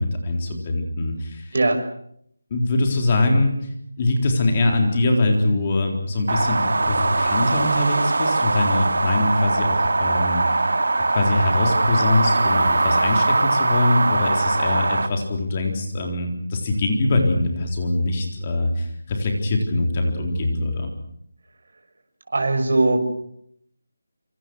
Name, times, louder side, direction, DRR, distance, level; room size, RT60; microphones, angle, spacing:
voice 1, 0.0-1.5 2.5-3.6 4.0-10.4 11.1-20.9, left 2 dB, 20° left, 3 dB, 4.0 m, -22 dB
sound 1, 6.3-15.1, right 3 dB, 65° right, 2.4 m, -21 dB
voice 2, 22.3-23.0, right 2 dB, 50° right, 5 dB, 6.1 m, -19 dB
27.0 x 26.5 x 6.3 m, 0.69 s
figure-of-eight pair, 175°, 0 cm